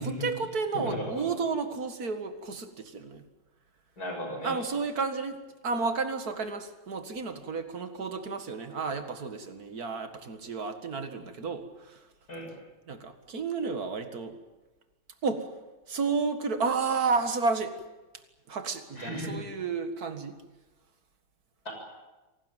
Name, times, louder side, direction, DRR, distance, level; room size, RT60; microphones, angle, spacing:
voice 1, 0.0-3.2 4.4-12.1 12.9-14.4 15.2-15.5 15.9-17.8 18.5-20.4, right 4 dB, 45° right, 8 dB, 2.3 m, -32 dB
voice 2, 0.7-1.3 4.0-4.6 12.3-12.5 18.9-19.4 21.6-21.7, equal, 45° left, 2 dB, 7.6 m, -35 dB
26.5 x 18.5 x 9.2 m, 1.1 s
omnidirectional pair, 2.3 m